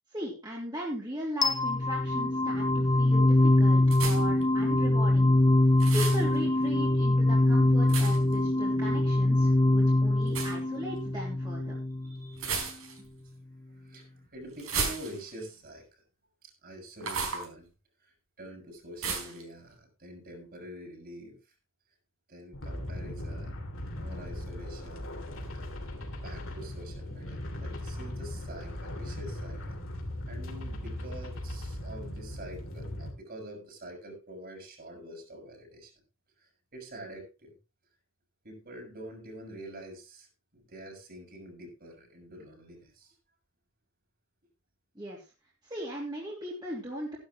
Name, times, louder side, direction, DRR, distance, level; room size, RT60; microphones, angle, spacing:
voice 1, 0.1-5.3 5.9-11.7 44.9-45.2 45.6-47.2, equal, 20° right, -5 dB, 3.1 m, -38 dB
sound 1, 1.4-12.4, left 1 dB, 20° left, 0.6 m, -24 dB
sound 2, 3.9-4.4 5.8-6.2 7.9-8.3 10.3-10.6 12.4-13.1 14.6-15.4 17.0-17.5 19.0-19.4, right 5 dB, 75° right, 4.6 m, -33 dB
voice 2, 12.0-12.4 13.4-16.0 16.4-17.7 18.0-21.4 22.3-25.1 25.5-25.6 26.2-35.9 36.4-37.6 38.4-40.3 40.5-43.1, right 1 dB, 45° right, 1 dB, 6.3 m, -46 dB
sound 3, 22.5-33.1, left 1 dB, 65° left, 3.1 m, -38 dB
14.5 x 11.5 x 3.1 m, 0.30 s
head